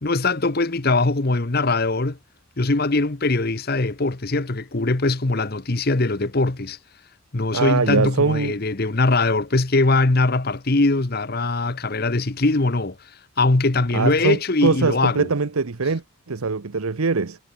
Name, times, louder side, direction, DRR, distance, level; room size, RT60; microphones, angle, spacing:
voice 1, 0.0-2.2 2.6-6.8 7.3-13.0 13.4-15.3, left 2 dB, 45° left, 1.0 m, -21 dB
voice 2, 7.5-8.5 13.9-17.4, right 4 dB, 85° right, 0.9 m, -22 dB
head